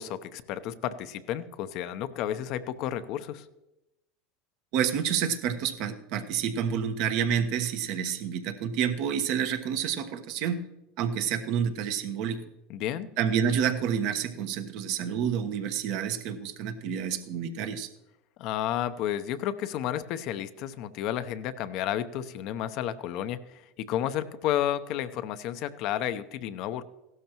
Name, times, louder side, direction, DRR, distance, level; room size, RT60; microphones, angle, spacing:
voice 1, 0.0-3.5 12.7-13.1 18.4-26.8, left 11 dB, 60° left, 12 dB, 0.7 m, -32 dB
voice 2, 4.7-10.6 11.0-12.4 13.2-17.9, right 8 dB, 60° right, 7 dB, 1.1 m, -29 dB
16.0 x 12.5 x 3.0 m, 0.94 s
hypercardioid pair, 90°, 0 cm